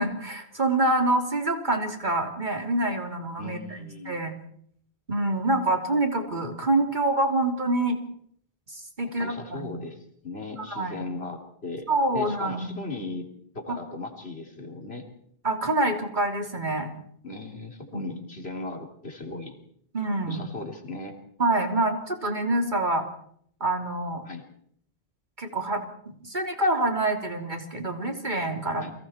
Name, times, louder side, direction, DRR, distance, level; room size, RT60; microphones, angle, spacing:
voice 1, 0.0-3.6 4.0-4.4 5.1-8.0 8.7-9.7 10.7-11.0 11.9-12.9 15.4-16.9 17.9-18.1 19.9-20.4 21.4-23.0 23.6-24.2 25.4-25.8 26.2-28.8, right 2 dB, 50° right, 4 dB, 3.4 m, -26 dB
voice 2, 3.4-4.2 9.2-10.0 10.2-11.9 12.1-13.3 13.5-15.0 17.2-19.6 20.3-21.2 24.2-24.4 28.8-28.9, left 3 dB, 80° left, 3 dB, 3.7 m, -37 dB
30.0 x 23.5 x 4.4 m, 0.65 s
omnidirectional pair, 1.0 m